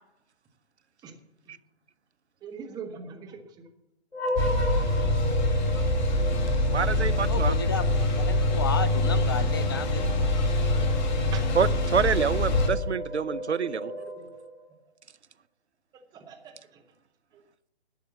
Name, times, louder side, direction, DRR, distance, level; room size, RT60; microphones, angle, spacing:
voice 1, 2.4-3.4 11.3-11.4 13.8-14.3 16.1-16.5, right 6 dB, 10° right, 4 dB, 1.1 m, -41 dB
sound 1, 4.1-14.7, equal, 80° left, 6.1 m, -35 dB
sound 2, 4.4-12.7, left 1 dB, 45° left, 1.7 m, -25 dB
voice 2, 6.7-7.5 11.5-13.9, right 6 dB, 85° right, 18 dB, 0.7 m, -27 dB
voice 3, 7.3-10.2, left 5 dB, 25° left, 15 dB, 0.4 m, -33 dB
12.0 x 7.5 x 7.2 m, 0.86 s
figure-of-eight pair, 135°, 33 cm